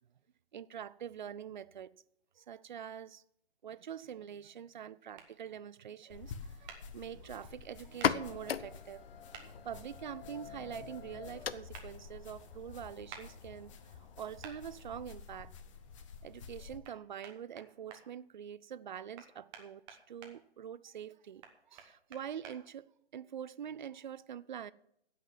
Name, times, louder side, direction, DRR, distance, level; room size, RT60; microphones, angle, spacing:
voice 1, 0.5-1.9 2.4-3.2 3.6-9.1 9.3-13.7 14.2-15.5 16.2-21.4 21.7-24.7, right 9 dB, 45° right, 0.5 m, -45 dB
sound 1, 5.2-5.3 6.7-6.8 8.0-8.1 9.3-9.5 11.7-11.9 13.1-13.3 14.4-14.6 16.8-17.0 17.2-18.0 19.2-20.3 21.4-22.6, right 7 dB, 15° right, 1.1 m, -50 dB
sound 2, 6.1-16.8, left 5 dB, 30° left, 1.0 m, -51 dB
sound 3, 7.9-15.3, left 8 dB, 60° left, 0.7 m, -40 dB
16.0 x 5.9 x 7.5 m
hypercardioid pair, 155°, 33 cm